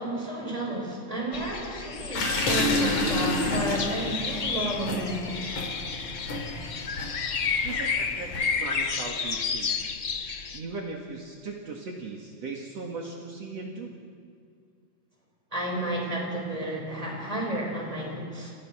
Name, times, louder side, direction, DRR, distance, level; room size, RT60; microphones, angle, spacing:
voice 1, 0.0-5.6 15.5-18.5, right 1 dB, 10° right, -1 dB, 6.2 m, -31 dB
sound 1, 1.3-10.6, left 5 dB, 45° left, 1.2 m, -31 dB
sound 2, 2.1-8.6, left 2 dB, 90° left, 4.8 m, -30 dB
voice 2, 7.6-9.9 10.5-14.0, right 3 dB, 60° right, 0 dB, 3.1 m, -38 dB
29.5 x 29.5 x 6.3 m, 2.1 s
omnidirectional pair, 3.4 m